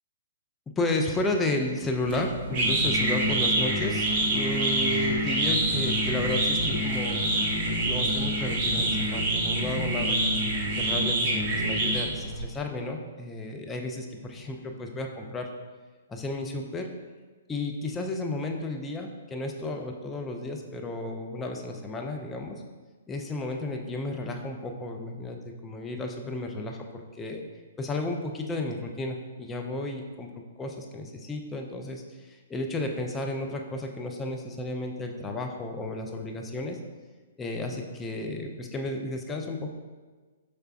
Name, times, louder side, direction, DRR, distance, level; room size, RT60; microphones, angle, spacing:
voice 1, 0.8-7.3 7.7-15.5 16.1-16.9 17.5-22.6 23.1-27.4 27.8-36.8 37.4-39.7, left 2 dB, 10° left, 2 dB, 0.4 m, -33 dB
sound 1, 2.1-12.4, right 1 dB, 35° right, 0.8 m, -26 dB
5.6 x 3.2 x 2.4 m, 1.4 s
figure-of-eight pair, 115°, 0 cm